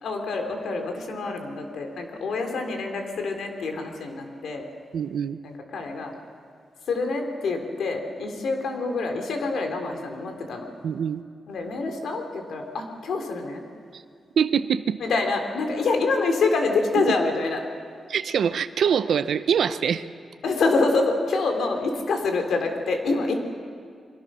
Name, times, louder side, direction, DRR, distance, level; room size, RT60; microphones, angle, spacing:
voice 1, 0.0-4.7 5.4-6.1 6.9-10.7 11.5-13.6 15.0-17.6 20.4-23.3, left 3 dB, 85° left, 4 dB, 3.2 m, -26 dB
voice 2, 4.9-5.4 10.8-11.2 14.4-15.0 18.1-20.1, right 7 dB, 70° right, 11 dB, 0.7 m, -24 dB
24.5 x 24.0 x 6.3 m, 2.2 s
wide cardioid pair, 160°, 0 cm